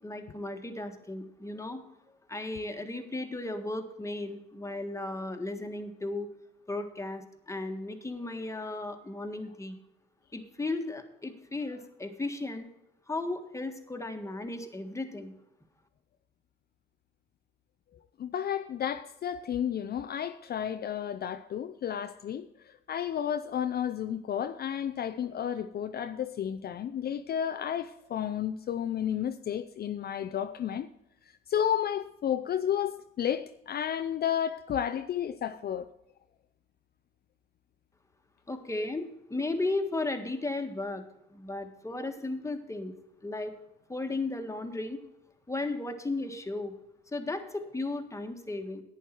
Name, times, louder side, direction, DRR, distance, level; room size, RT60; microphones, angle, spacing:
voice 1, 0.0-1.8 2.3-6.3 6.7-9.8 10.3-12.7 13.1-15.3 38.5-41.0 41.3-42.9 43.2-43.5 43.9-45.0 45.5-46.7 47.1-48.8, left 2 dB, 15° left, 1.6 m, -35 dB
voice 2, 18.2-30.9 31.5-35.9, left 9 dB, 50° left, 0.5 m, -32 dB
11.0 x 9.5 x 4.5 m
cardioid pair, 90°, 20 cm